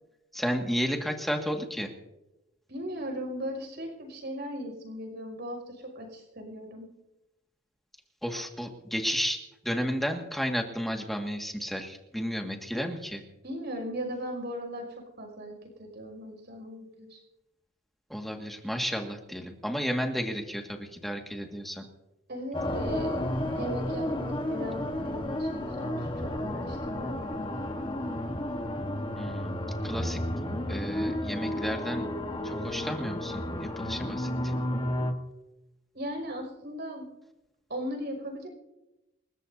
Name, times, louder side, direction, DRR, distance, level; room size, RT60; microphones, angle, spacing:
voice 1, 0.3-1.9 8.2-13.2 18.1-21.8 29.2-29.5 29.8-30.2 30.7-32.1 32.4-34.5, equal, ahead, 2 dB, 1.9 m, -32 dB
voice 2, 2.7-6.9 13.4-17.2 22.3-27.2 35.9-37.1 37.7-38.5, equal, 55° right, 2 dB, 5.9 m, -38 dB
sound 1, 22.5-35.1, left 1 dB, 25° left, 1.3 m, -32 dB
29.0 x 14.0 x 2.7 m, 0.96 s
head